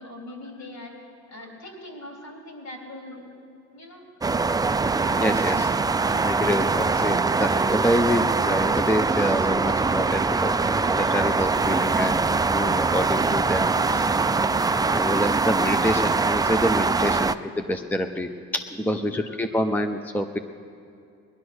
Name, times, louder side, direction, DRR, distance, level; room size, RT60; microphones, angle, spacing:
voice 1, 0.0-3.3 3.7-4.1 18.8-19.2, left 1 dB, 60° left, 0 dB, 3.9 m, -42 dB
sound 1, 4.2-17.3, right 4 dB, 15° right, 0.3 m, -23 dB
voice 2, 5.2-5.7 6.2-10.5 10.9-14.2 14.6-20.4, equal, 5° left, 6 dB, 0.7 m, -27 dB
19.5 x 11.5 x 6.3 m, 2.5 s
cardioid pair, 90°, 30 cm